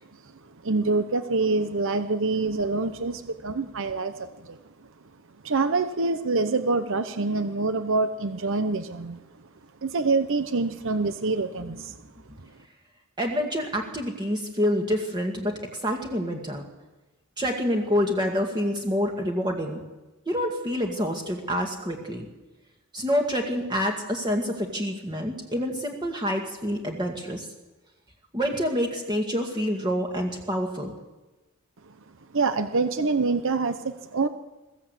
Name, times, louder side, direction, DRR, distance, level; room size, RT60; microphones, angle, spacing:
voice 1, 0.6-4.6 5.4-9.2 9.8-12.0 32.3-34.3, right 3 dB, 65° right, 10 dB, 0.9 m, -26 dB
voice 2, 13.2-16.6 17.4-19.8 20.3-22.3 22.9-27.5 28.3-30.9, equal, 20° right, 1 dB, 2.0 m, -27 dB
22.0 x 15.5 x 8.3 m, 1.1 s
head